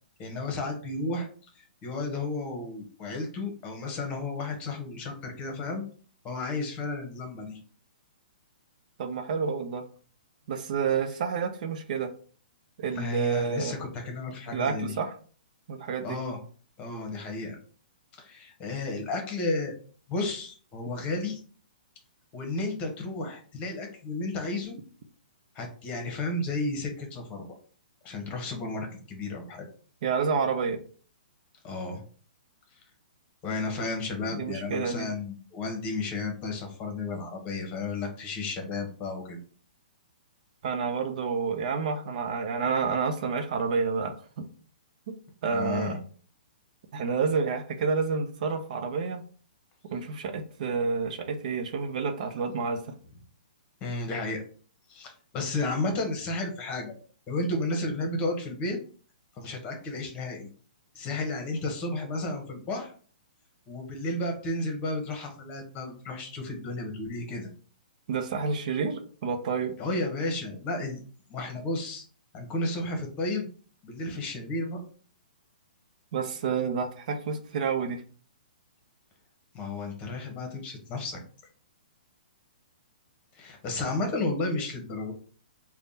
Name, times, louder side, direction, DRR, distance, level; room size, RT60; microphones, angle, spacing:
voice 1, 0.2-1.3 1.5-5.8 6.2-7.6 12.9-14.9 16.0-16.4 16.8-17.6 18.1-19.7 20.1-21.4 22.3-24.8 25.5-27.5 28.0-29.7 31.6-32.0 33.4-39.4 45.5-46.0 53.8-54.4 54.9-56.9 57.3-58.8 59.3-60.5 60.9-62.9 63.7-67.5 69.8-71.0 71.3-72.0 72.3-73.5 73.8-74.8 79.5-81.2 83.3-85.1, left 2 dB, 25° left, 3 dB, 1.1 m, -32 dB
voice 2, 9.0-9.9 10.5-12.1 12.8-13.7 14.5-15.1 15.7-16.2 30.0-30.8 34.3-35.1 40.6-44.5 45.4-46.0 46.9-49.2 49.9-52.8 68.1-69.8 76.1-78.0, right 5 dB, 55° right, 5 dB, 0.7 m, -29 dB
3.4 x 2.3 x 4.0 m, 0.42 s
hypercardioid pair, 130°, 5 cm